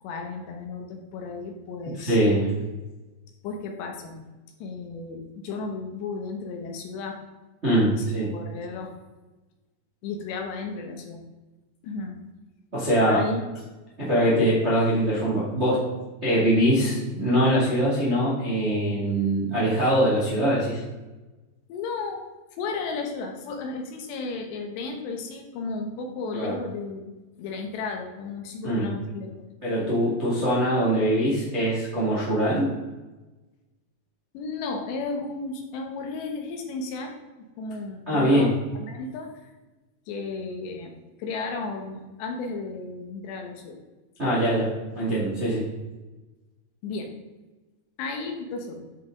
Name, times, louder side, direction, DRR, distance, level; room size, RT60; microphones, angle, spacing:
voice 1, 0.0-2.2 3.4-4.2 4.6-7.2 7.8-8.9 10.0-11.2 11.8-12.2 13.1-13.4 21.7-22.2 22.6-27.1 27.4-29.3 34.3-39.5 40.1-40.9 41.2-43.8 46.8-47.1 48.0-48.8, left 4 dB, 80° left, 3 dB, 3.3 m, -34 dB
voice 2, 2.0-2.5 7.6-8.3 12.7-13.2 14.0-15.8 16.2-20.8 26.3-26.5 28.6-28.9 29.6-32.7 38.1-38.5 44.2-45.6, right 1 dB, 35° right, -6 dB, 1.0 m, -23 dB
10.5 x 5.5 x 3.8 m, 1.1 s
omnidirectional pair, 5.0 m